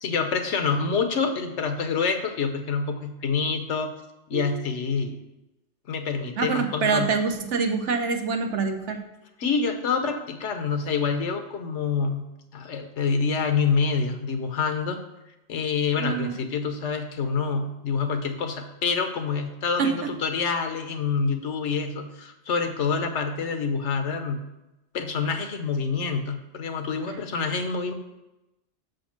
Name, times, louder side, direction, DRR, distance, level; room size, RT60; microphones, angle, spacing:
voice 1, 0.0-3.9 4.3-5.2 5.9-7.1 9.4-15.0 15.5-24.4 24.9-27.9, left 5 dB, 85° left, 7 dB, 1.2 m, -27 dB
voice 2, 6.4-9.0 16.0-16.3 19.8-20.1, right 5 dB, 90° right, 5 dB, 1.2 m, -25 dB
6.6 x 5.3 x 5.8 m, 0.96 s
omnidirectional pair, 1.2 m